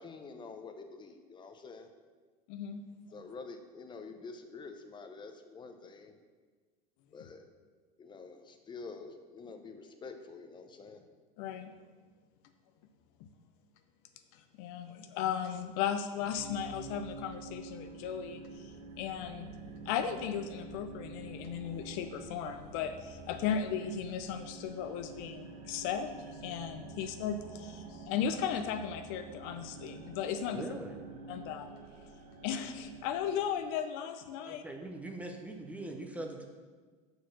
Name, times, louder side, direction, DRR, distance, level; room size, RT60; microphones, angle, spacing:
voice 1, 0.0-1.9 3.1-6.2 7.1-7.4 8.0-11.1 27.0-27.1, left 4 dB, 25° left, 7 dB, 0.8 m, -47 dB
voice 2, 2.5-2.8 11.4-11.7 14.6-18.7 19.0-19.5 19.9-30.6 31.3-31.7 32.4-34.6, left 8 dB, 65° left, 8 dB, 0.6 m, -36 dB
sound 1, 16.3-33.8, right 3 dB, 65° right, 1.6 m, -48 dB
voice 3, 30.5-31.0 34.4-36.4, right 2 dB, 5° right, 3 dB, 0.9 m, -42 dB
6.6 x 4.7 x 6.1 m, 1.4 s
supercardioid pair, 115°, 20 cm